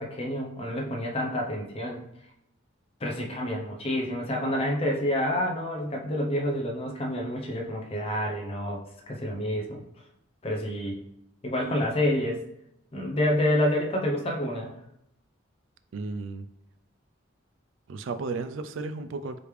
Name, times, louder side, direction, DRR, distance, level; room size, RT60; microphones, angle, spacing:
voice 1, 0.0-2.0 3.0-9.8 10.4-11.0 11.4-12.4 12.9-14.7, left 1 dB, 30° left, 0 dB, 0.6 m, -28 dB
voice 2, 15.9-16.4 17.9-19.4, right 4 dB, 65° right, 10 dB, 0.3 m, -34 dB
4.9 x 3.3 x 3.1 m, 0.79 s
head